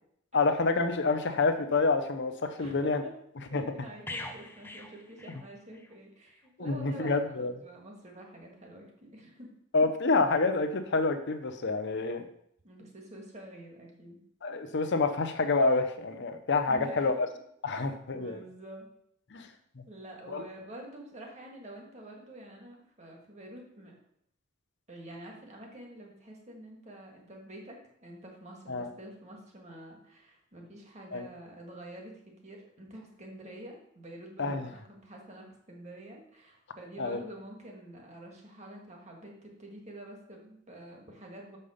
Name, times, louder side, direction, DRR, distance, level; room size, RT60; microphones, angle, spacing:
voice 1, 0.3-3.0 3.5-3.6 6.6-7.5 9.7-12.2 14.4-17.3 17.6-18.4 19.3-19.5 19.8-19.9 20.3-20.4 28.7-28.9 31.1-31.3 34.4-34.7 37.0-37.2, left 3 dB, 60° left, 8 dB, 0.8 m, -28 dB
voice 2, 2.6-9.5 12.6-14.2 16.7-17.2 17.7-18.9 19.3-19.5 19.9-23.9 24.9-41.6, right 1 dB, 35° right, 0 dB, 1.8 m, -48 dB
sound 1, 4.1-6.0 6.3-6.5, left 2 dB, 10° left, 0.5 m, -43 dB
6.6 x 5.5 x 5.1 m, 0.72 s
head